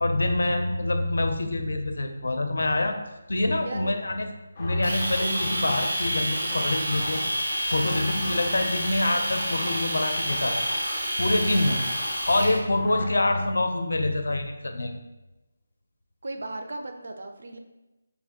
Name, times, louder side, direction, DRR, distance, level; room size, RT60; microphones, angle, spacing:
voice 1, 0.0-3.0 3.3-4.3 4.6-7.2 7.6-10.6 11.2-14.9, left 2 dB, 85° left, 6 dB, 0.5 m, -26 dB
voice 2, 3.5-4.0 16.2-17.6, right 2 dB, 60° right, 5 dB, 0.4 m, -36 dB
sound 1, 4.6-13.1, left 2 dB, 25° left, 0.4 m, -38 dB
Domestic sounds home sounds, 4.8-12.6, right 1 dB, 90° right, 1.0 m, -29 dB
3.3 x 2.5 x 3.5 m, 1.0 s
figure-of-eight pair, 175°, 0 cm